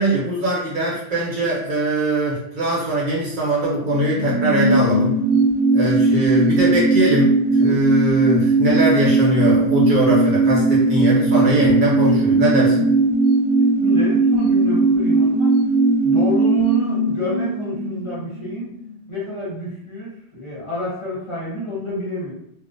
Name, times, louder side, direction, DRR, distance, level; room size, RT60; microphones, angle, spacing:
voice 1, 0.0-5.2 5.7-12.9, right 1 dB, 55° right, -5 dB, 0.8 m, -21 dB
sound 1, 3.8-18.9 19.2-19.3, right 2 dB, 80° left, 0.9 m, -18 dB
voice 2, 13.8-15.5 16.0-18.7 19.1-22.3, left 1 dB, 30° left, -8 dB, 0.9 m, -28 dB
2.4 x 2.1 x 2.5 m, 0.76 s
omnidirectional pair, 1.1 m